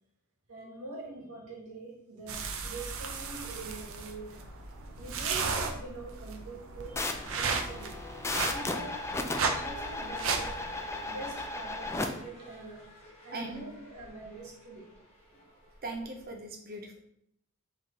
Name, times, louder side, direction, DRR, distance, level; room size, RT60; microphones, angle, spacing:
voice 1, 0.5-4.4 5.0-8.0 8.5-9.0 9.3-10.7 11.0-14.9 15.3-15.4, right 3 dB, 90° right, -2 dB, 1.5 m, -44 dB
sound 1, 2.3-11.4, right 5 dB, 65° right, 0.6 m, -35 dB
sound 2, 3.2-16.3, left 1 dB, 30° left, 1.2 m, -54 dB
sound 3, 7.0-12.1, left 2 dB, 10° left, 0.4 m, -35 dB
voice 2, 13.3-13.6 15.8-17.0, right 2 dB, 45° right, 3 dB, 0.8 m, -39 dB
4.2 x 3.3 x 3.7 m, 0.73 s
head